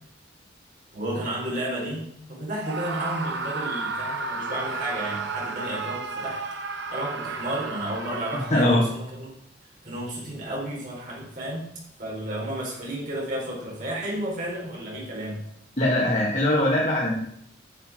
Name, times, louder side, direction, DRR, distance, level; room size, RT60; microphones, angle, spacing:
voice 1, 0.9-6.4 6.9-9.3 9.8-11.6 12.0-15.4, right 1 dB, 45° right, -4 dB, 4.6 m, -32 dB
Screaming, 2.6-8.9, right 4 dB, 65° right, 1.0 m, -33 dB
voice 2, 8.3-8.8 15.8-17.2, left 1 dB, 35° left, -5 dB, 1.8 m, -21 dB
9.9 x 7.2 x 6.2 m, 0.72 s
head